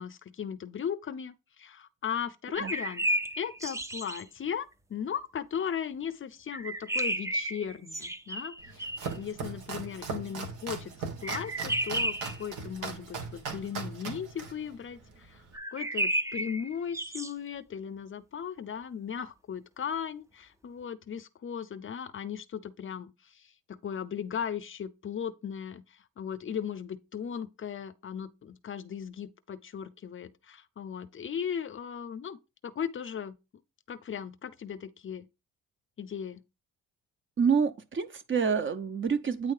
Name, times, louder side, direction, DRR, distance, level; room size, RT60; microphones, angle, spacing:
voice 1, 0.0-3.0 3.4-8.9 9.1-10.9 11.2-15.4 15.7-23.4 23.7-25.8 26.2-32.4 32.6-33.4 33.9-35.3 36.0-36.4, left 8 dB, 40° left, 0.7 m, -37 dB
sound 1, 2.5-4.2 6.5-9.2 11.2-12.4 15.5-17.3, right 1 dB, 10° right, 0.5 m, -32 dB
Domestic sounds home sounds, 8.6-15.6, right 5 dB, 90° right, 1.7 m, -39 dB
voice 2, 37.4-39.5, right 6 dB, 40° right, 0.8 m, -27 dB
9.0 x 3.2 x 4.8 m
cardioid pair, 90°, 30 cm